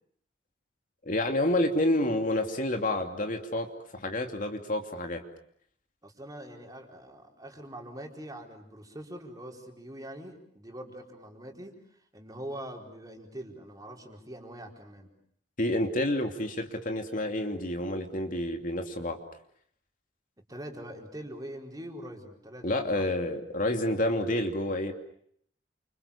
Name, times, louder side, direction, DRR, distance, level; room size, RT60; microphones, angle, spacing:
voice 1, 1.0-5.2 15.6-19.2 22.6-24.9, left 1 dB, 50° left, 4 dB, 2.8 m, -29 dB
voice 2, 6.0-11.8 12.1-15.1 20.5-23.1, right 1 dB, 20° right, 2 dB, 4.6 m, -43 dB
30.0 x 27.0 x 7.1 m, 0.66 s
head